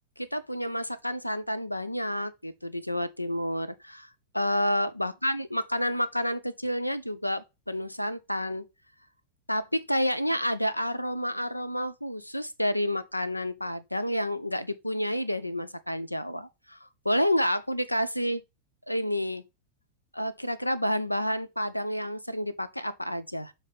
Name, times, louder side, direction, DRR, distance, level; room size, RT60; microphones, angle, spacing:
voice 1, 0.2-4.1 4.3-8.7 9.5-18.4 18.9-19.4 20.1-23.5, equal, 90° left, 0.5 m, -29 dB
7.3 x 3.4 x 4.1 m
figure-of-eight pair, 90°, 0 cm